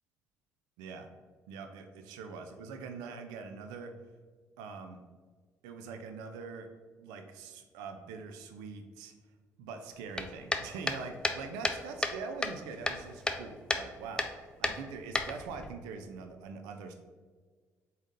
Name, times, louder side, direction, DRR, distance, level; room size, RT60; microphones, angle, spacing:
voice 1, 0.8-1.1 1.5-3.9 4.6-5.0 5.6-6.7 7.0-9.1 9.6-16.9, right 5 dB, 85° right, 6 dB, 0.4 m, -43 dB
sound 1, 10.1-12.2 12.4-13.4 13.7-13.9 14.2-14.3 14.6-15.7, left 2 dB, 10° left, 0.5 m, -32 dB
3.8 x 3.7 x 3.7 m, 1.5 s
hypercardioid pair, 55°, 7 cm